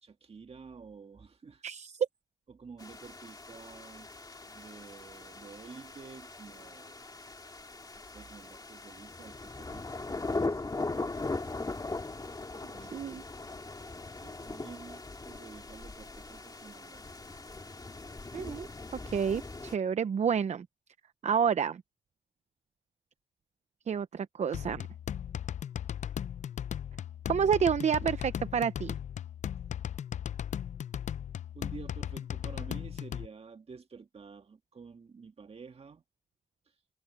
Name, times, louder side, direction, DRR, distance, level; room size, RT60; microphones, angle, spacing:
voice 1, 0.0-1.6 2.5-4.1 4.5-7.0 8.0-11.3 12.5-13.6 14.2-17.1 31.5-36.0, right 5 dB, 55° right, 1.9 m, -50 dB
voice 2, 1.6-1.9 12.9-13.2 18.3-18.7 19.1-20.7 21.2-21.8 23.9-24.9 27.3-28.9, right 7 dB, 70° right, 0.6 m, -29 dB
sound 1, 2.8-19.8, left 3 dB, 35° left, 2.4 m, -40 dB
sound 2, 24.5-33.3, left 9 dB, 85° left, 0.5 m, -37 dB
cardioid pair, 75°, 12 cm